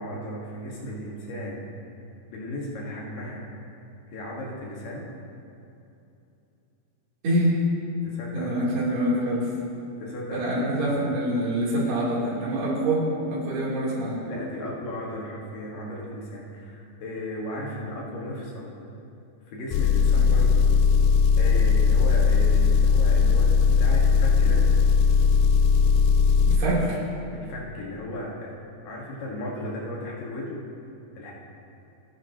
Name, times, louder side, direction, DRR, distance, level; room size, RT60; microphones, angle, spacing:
voice 1, 0.0-1.7 2.3-3.5 4.1-5.1 8.0-8.7 10.0-10.9 14.2-18.7 19.5-20.7 21.4-24.7 27.3-28.6 28.8-30.6 31.2-31.3, left 1 dB, 65° left, -4 dB, 3.2 m, -35 dB
voice 2, 8.3-9.5 10.3-14.2 26.5-27.0, right 1 dB, 75° right, -6 dB, 5.4 m, -25 dB
Engine, 19.7-26.6, left 5 dB, 85° left, 2.6 m, -19 dB
29.0 x 10.5 x 3.0 m, 2.8 s
omnidirectional pair, 4.6 m